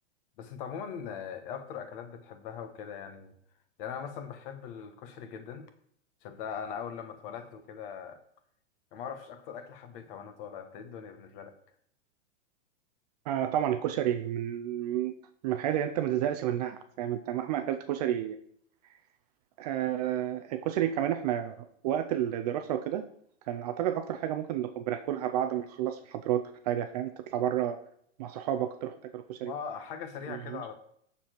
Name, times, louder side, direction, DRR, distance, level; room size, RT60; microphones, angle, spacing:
voice 1, 0.4-3.4 3.8-5.7 6.2-8.2 8.9-11.5 27.3-27.5 29.4-30.7, left 7 dB, 45° left, 8 dB, 1.2 m, -40 dB
voice 2, 13.3-15.1 15.4-18.4 19.6-21.6 21.8-23.0 23.5-27.8 28.2-29.5 30.3-30.6, right 11 dB, 35° right, 8 dB, 0.4 m, -31 dB
7.1 x 6.9 x 4.5 m, 0.67 s
hypercardioid pair, 145°, 38 cm